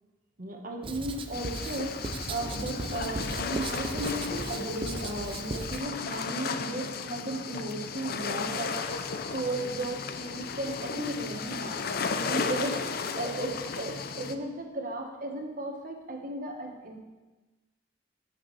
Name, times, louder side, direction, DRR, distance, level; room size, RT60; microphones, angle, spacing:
voice 1, 0.4-8.7 9.3-11.9 12.3-17.0, right 2 dB, 50° right, 2 dB, 1.3 m, -35 dB
Writing, 0.8-5.8, right 2 dB, 30° right, 0.5 m, -37 dB
sound 1, 1.3-14.3, left 5 dB, 55° left, 0.5 m, -34 dB
15.0 x 5.9 x 3.2 m, 1.2 s
head